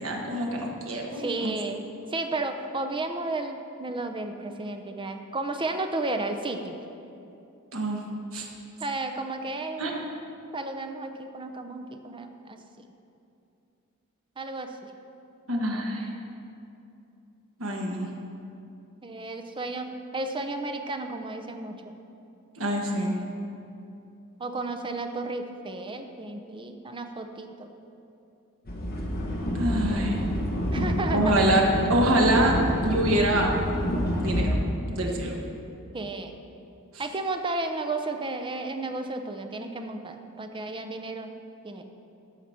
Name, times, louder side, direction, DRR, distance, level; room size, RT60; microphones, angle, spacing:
voice 1, 0.0-1.5 7.7-8.0 8.3-8.5 9.8-9.9 15.5-16.1 17.6-18.1 22.6-23.2 29.5-30.2 31.1-31.6 31.9-32.5 32.8-33.5 34.2-34.6 34.9-35.4, right 1 dB, 65° right, 0 dB, 1.4 m, -25 dB
voice 2, 1.1-1.8 2.1-6.8 8.8-10.1 10.5-12.6 14.4-14.9 19.0-21.8 24.4-27.7 30.7-31.3 35.9-36.4 37.0-41.8, right 2 dB, 20° right, 6 dB, 0.6 m, -33 dB
sound 1, 28.6-34.4, equal, 45° left, 1.5 m, -28 dB
14.0 x 4.9 x 5.8 m, 2.7 s
head